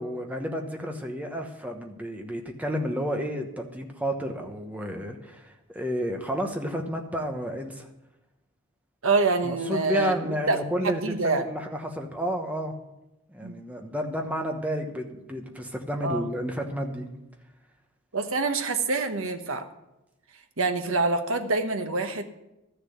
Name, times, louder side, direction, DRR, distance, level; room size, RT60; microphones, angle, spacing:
voice 1, 0.0-7.9 9.4-12.7 13.3-17.1, equal, 5° right, 3 dB, 1.1 m, -31 dB
voice 2, 9.0-11.5 13.4-13.5 16.0-16.3 18.1-19.6 20.6-22.2, right 3 dB, 65° right, 7 dB, 1.1 m, -26 dB
13.0 x 6.9 x 7.9 m, 0.93 s
head